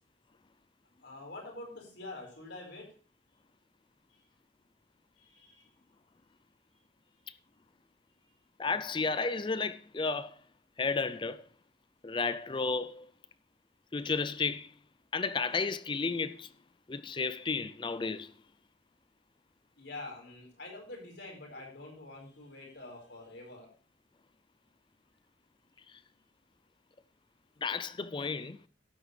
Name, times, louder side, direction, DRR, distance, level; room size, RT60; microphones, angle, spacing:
voice 1, 0.9-2.8 5.2-5.7 7.0-7.1 19.8-23.7, left 2 dB, 60° left, 4.8 m, -46 dB
voice 2, 8.6-10.3 10.8-11.4 12.0-13.1 13.9-14.7 15.1-16.5 16.9-18.3 27.6-28.6, left 4 dB, 25° left, 0.4 m, -32 dB
12.0 x 9.7 x 3.3 m
head